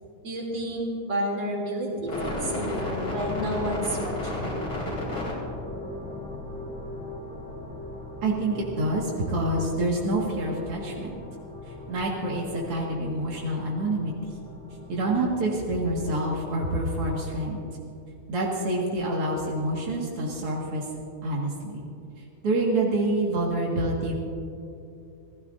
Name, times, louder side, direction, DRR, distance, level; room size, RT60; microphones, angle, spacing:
voice 1, 0.2-4.6, equal, 55° right, -2 dB, 3.7 m, -30 dB
sound 1, 2.1-17.7, left 1 dB, 80° left, 5.2 m, -36 dB
voice 2, 8.2-11.2 11.6-14.1 14.9-17.6 18.3-20.8 21.2-21.8 22.4-24.1, right 1 dB, 90° right, -3 dB, 2.8 m, -27 dB
27.5 x 16.5 x 2.6 m, 2.6 s
omnidirectional pair, 2.4 m